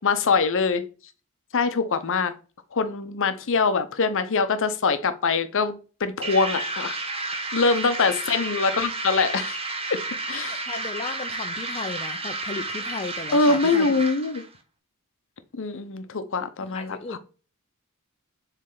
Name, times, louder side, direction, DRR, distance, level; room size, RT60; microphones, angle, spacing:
voice 1, 0.0-0.8 1.5-2.3 2.7-5.7 6.0-7.0 7.3-9.6 10.3-10.6 13.3-14.4 15.6-17.2, left 4 dB, 60° left, 0.7 m, -23 dB
sound 1, 6.2-14.5, right 2 dB, 25° right, 0.8 m, -32 dB
voice 2, 10.6-13.9 16.7-17.2, left 4 dB, 25° left, 0.5 m, -35 dB
7.5 x 3.3 x 3.9 m
head